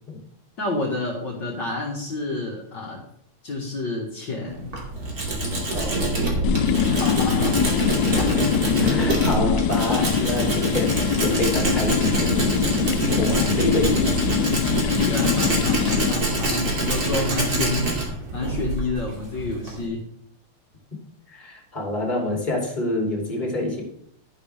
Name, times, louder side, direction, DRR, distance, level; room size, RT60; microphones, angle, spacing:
voice 1, 0.6-3.0 3.4-4.7 6.8-7.6 8.1-8.7 15.0-17.9 18.3-20.0, left 3 dB, 60° left, -2 dB, 2.3 m, -29 dB
Tools, 4.5-19.9, right 2 dB, 45° right, 3.0 m, -25 dB
voice 2, 5.7-6.6 8.0-8.3 8.8-14.5 21.3-23.8, left 1 dB, 20° left, -1 dB, 3.0 m, -27 dB
sound 1, 6.4-16.1, left 9 dB, 75° left, 1.0 m, -24 dB
11.5 x 10.5 x 3.4 m, 0.71 s
omnidirectional pair, 2.4 m